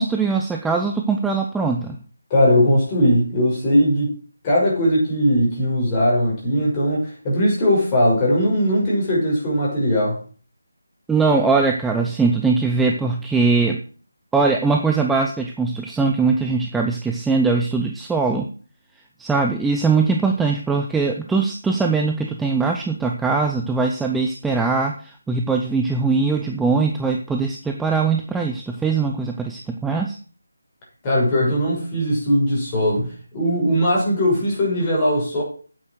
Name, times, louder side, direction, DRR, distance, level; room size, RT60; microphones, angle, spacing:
voice 1, 0.0-2.0 11.1-13.8 14.3-18.5 19.2-30.2, right 4 dB, 5° right, 0.7 m, -21 dB
voice 2, 2.3-4.1 4.4-10.2 31.0-33.1 33.3-35.4, equal, 20° left, 6.3 m, -19 dB
9.1 x 8.9 x 6.4 m
figure-of-eight pair, 160°, 0 cm